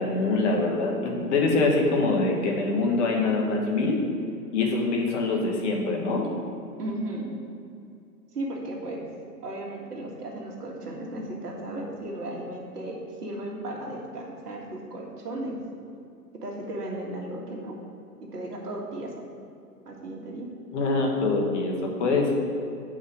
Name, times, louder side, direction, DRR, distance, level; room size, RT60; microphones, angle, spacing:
voice 1, 0.0-4.0 4.5-6.3 20.7-22.3, left 3 dB, 45° left, 0 dB, 1.6 m, -24 dB
voice 2, 6.8-7.3 8.3-9.0 9.4-15.6 16.3-17.7 18.2-19.1 19.9-20.5, right 1 dB, 75° right, -1 dB, 2.1 m, -35 dB
9.0 x 5.5 x 5.1 m, 2.6 s
hypercardioid pair, 140°, 47 cm